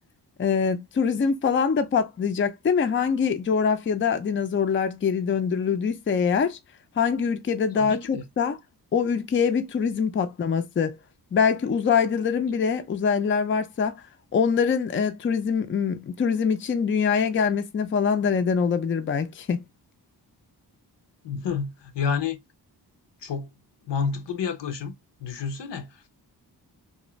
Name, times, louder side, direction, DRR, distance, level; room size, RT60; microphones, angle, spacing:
voice 1, 0.4-6.6 7.0-8.6 8.9-10.9 11.3-14.0 14.3-19.6, left 6 dB, 30° left, 0.4 m, -24 dB
voice 2, 7.7-8.2 21.2-22.4 23.2-23.5 23.9-24.9 25.2-26.1, left 6 dB, 75° left, 0.7 m, -29 dB
2.5 x 2.1 x 3.0 m
cardioid pair, 60°, 42 cm